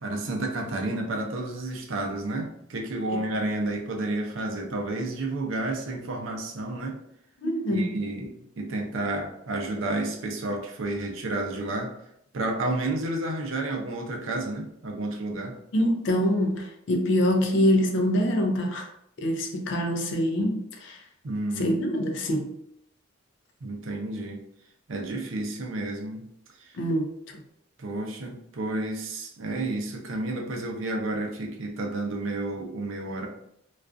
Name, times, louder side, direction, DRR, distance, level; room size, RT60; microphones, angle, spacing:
voice 1, 0.0-7.0 7.7-12.0 12.3-15.5 21.2-21.7 23.6-24.4 24.9-26.2 26.6-26.7 27.8-33.3, right 2 dB, 85° right, 0.5 m, -31 dB
voice 2, 7.4-8.0 15.7-18.9 19.2-21.1 21.6-22.6 26.7-27.4, equal, 65° left, 0.4 m, -25 dB
2.4 x 2.3 x 2.4 m
head